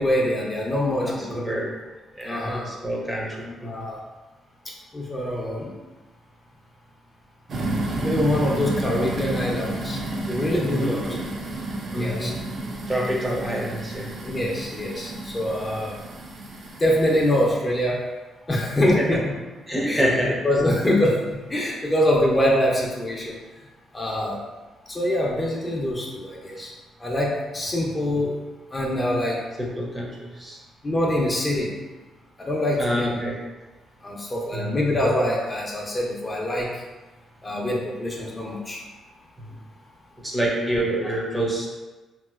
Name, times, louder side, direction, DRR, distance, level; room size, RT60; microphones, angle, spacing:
voice 1, 0.0-1.4 2.2-2.7 3.4-4.0 4.9-5.7 8.0-10.0 10.3-11.0 12.0-12.3 14.2-16.0 16.8-18.0 18.5-19.2 19.9-20.1 20.4-21.2 21.5-23.3 23.9-24.4 24.9-26.7 27.0-28.4 28.7-29.4 30.8-31.7 32.4-33.1 34.0-36.7 37.4-38.8, left 1 dB, 25° left, -2 dB, 0.5 m, -24 dB
voice 2, 1.0-1.7 2.1-3.9 10.7-11.2 11.9-12.5 12.9-14.1 19.0-19.2 19.7-20.4 29.6-30.6 32.8-33.4 34.5-34.8 40.2-41.7, equal, 20° right, -2 dB, 0.6 m, -27 dB
sound 1, 7.5-17.5, right 1 dB, 60° right, 0.4 m, -31 dB
2.9 x 2.6 x 2.4 m, 1.2 s
cardioid pair, 90°, 0 cm